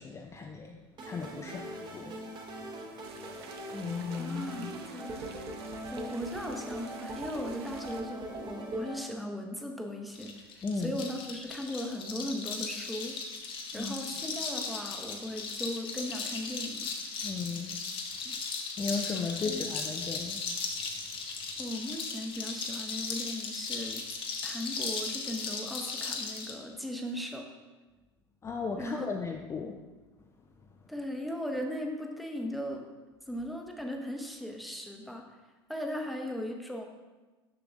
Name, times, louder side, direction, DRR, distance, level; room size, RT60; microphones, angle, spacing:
voice 1, 0.0-2.2 3.7-4.7 10.6-11.0 13.7-13.9 17.2-17.8 18.8-20.5 28.4-29.8, left 4 dB, 20° left, 2 dB, 0.5 m, -36 dB
sound 1, 1.0-9.0, right 1 dB, 35° right, 1.0 m, -41 dB
sound 2, 3.0-8.0, right 6 dB, 70° right, 0.6 m, -51 dB
voice 2, 4.2-5.2 5.9-10.3 10.8-13.2 13.7-16.9 18.2-18.4 19.4-19.7 21.6-24.0 24.4-27.5 28.8-29.1 30.9-32.9 33.3-35.2 35.7-36.8, equal, ahead, 2 dB, 0.8 m, -37 dB
sound 3, 10.1-26.6, left 4 dB, 40° left, 0.9 m, -37 dB
6.6 x 5.9 x 2.5 m, 1.2 s
hypercardioid pair, 75°, 14 cm